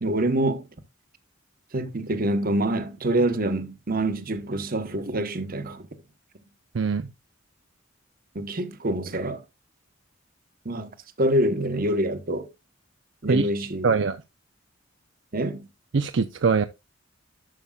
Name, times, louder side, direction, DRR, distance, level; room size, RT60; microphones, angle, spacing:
voice 1, 0.0-0.6 1.7-5.9 8.3-9.4 10.6-10.9 11.2-12.5 13.2-14.0 15.3-15.7, right 1 dB, 45° right, 1.1 m, -26 dB
voice 2, 6.7-7.1 13.3-13.5 13.8-14.2 15.9-16.6, right 5 dB, 65° right, 0.5 m, -22 dB
11.5 x 6.9 x 2.4 m
head